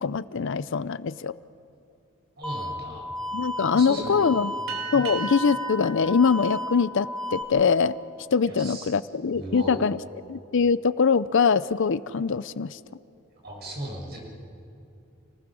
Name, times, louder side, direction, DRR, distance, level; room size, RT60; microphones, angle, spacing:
voice 1, 0.0-1.4 3.3-4.5 4.9-8.0 8.3-10.0 10.3-12.8, left 5 dB, 65° left, 17 dB, 0.5 m, -23 dB
sound 1, 2.4-7.4, left 1 dB, 5° left, 2.0 m, -33 dB
voice 2, 2.4-3.1 3.7-4.2 4.9-5.0 8.4-8.9 9.3-9.8 13.4-14.2, right 1 dB, 50° right, -1 dB, 6.6 m, -36 dB
sound 2, 4.7-7.6, right 7 dB, 80° right, 3.4 m, -38 dB
29.0 x 20.0 x 6.2 m, 2.7 s
head